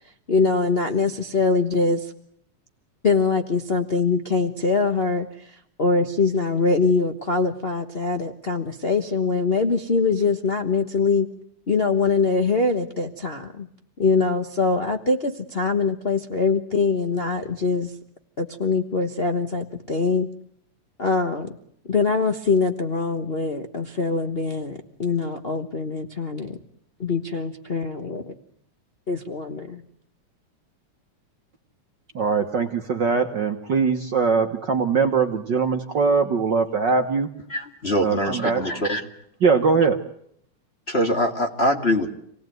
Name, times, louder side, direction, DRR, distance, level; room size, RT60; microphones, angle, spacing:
voice 1, 0.3-2.1 3.0-11.3 11.7-13.7 14.0-17.9 18.4-20.3 21.0-21.5 21.9-26.6 27.0-28.3 29.1-29.8, left 4 dB, 50° left, 3 dB, 0.6 m, -23 dB
voice 2, 32.1-37.3 38.0-38.6 39.4-40.0, right 5 dB, 50° right, 6 dB, 1.5 m, -21 dB
voice 3, 37.5-39.1 40.9-42.1, equal, 25° left, 5 dB, 1.9 m, -23 dB
27.5 x 19.0 x 9.3 m, 0.70 s
omnidirectional pair, 3.4 m